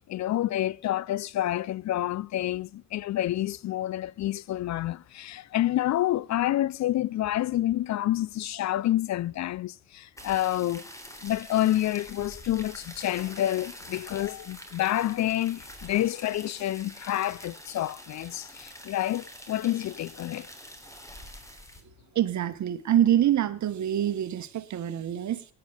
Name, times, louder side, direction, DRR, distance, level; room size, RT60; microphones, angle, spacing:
voice 1, 0.1-10.8 11.2-20.5, left 13 dB, 55° left, 0.6 m, -28 dB
sound 1, 10.2-21.8, equal, 10° left, 3.4 m, -46 dB
voice 2, 22.1-25.4, right 11 dB, 55° right, 1.4 m, -25 dB
19.0 x 10.5 x 3.5 m
supercardioid pair, 70°, 34 cm